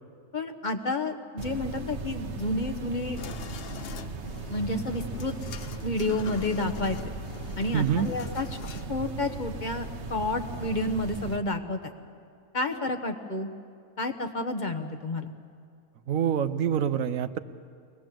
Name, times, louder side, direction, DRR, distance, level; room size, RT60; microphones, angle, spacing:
voice 1, 0.3-3.3 4.5-5.4 5.8-7.1 7.6-8.5 8.9-11.8 12.5-13.5 14.0-15.3, left 2 dB, 35° left, 6 dB, 1.2 m, -30 dB
sound 1, 1.4-11.4, right 3 dB, 60° right, 1.3 m, -37 dB
sound 2, 3.2-8.9, left 7 dB, 55° left, 0.8 m, -43 dB
voice 2, 7.7-8.1 16.1-17.4, right 8 dB, 85° right, 12 dB, 1.2 m, -26 dB
23.5 x 20.0 x 7.6 m, 2.3 s
omnidirectional pair, 1.4 m